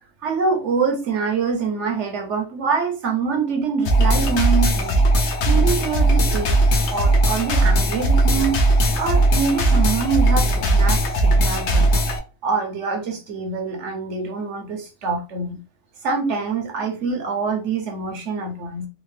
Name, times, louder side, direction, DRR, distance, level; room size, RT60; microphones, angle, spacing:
voice 1, 0.2-6.6 6.9-12.0 12.4-15.6 16.0-18.9, right 5 dB, 60° right, 3 dB, 0.9 m, -25 dB
sound 1, 3.8-12.2, right 1 dB, 60° left, 0.8 m, -18 dB
3.5 x 2.2 x 3.1 m, 0.33 s
omnidirectional pair, 1.6 m